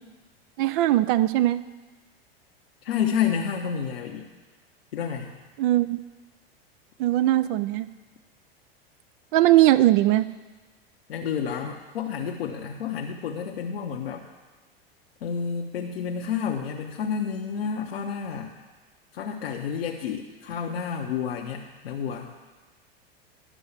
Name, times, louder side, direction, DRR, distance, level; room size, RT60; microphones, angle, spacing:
voice 1, 0.6-1.6 5.6-6.0 7.0-7.9 9.3-10.3, right 15 dB, 60° right, 14 dB, 0.5 m, -20 dB
voice 2, 2.8-4.3 4.9-5.3 11.1-14.2 15.2-18.5 19.1-22.3, left 7 dB, 80° left, 0 dB, 0.9 m, -30 dB
11.0 x 5.5 x 7.2 m, 1.2 s
hypercardioid pair, 95°, 30 cm